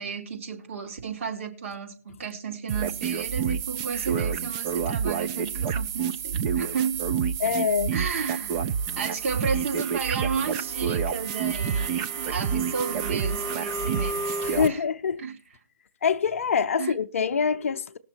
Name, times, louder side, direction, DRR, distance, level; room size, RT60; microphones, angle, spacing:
voice 1, 0.0-7.1 7.9-14.4 14.7-14.8 15.2-15.4 16.8-16.9, right 6 dB, 45° right, 2.6 m, -33 dB
sound 1, 2.7-14.7, right 6 dB, 20° right, 0.5 m, -28 dB
voice 2, 7.4-7.9 14.4-15.2 16.0-18.0, left 6 dB, 50° left, 0.7 m, -25 dB
19.0 x 6.5 x 4.5 m
figure-of-eight pair, 150°, 10 cm